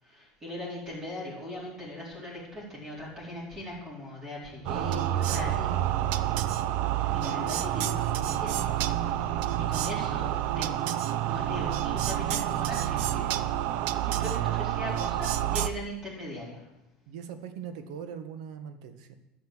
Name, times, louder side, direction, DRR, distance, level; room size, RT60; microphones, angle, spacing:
voice 1, 0.0-5.8 7.1-8.6 9.6-10.9 11.2-13.3 14.0-16.6, left 1 dB, 20° right, -5 dB, 4.2 m, -39 dB
sound 1, 4.7-15.7, right 12 dB, 60° right, 0.6 m, -28 dB
voice 2, 9.5-10.1 10.8-11.0 17.1-19.2, right 8 dB, 80° right, 9 dB, 1.4 m, -42 dB
11.5 x 6.9 x 7.6 m, 0.91 s
cardioid pair, 155°, 3 cm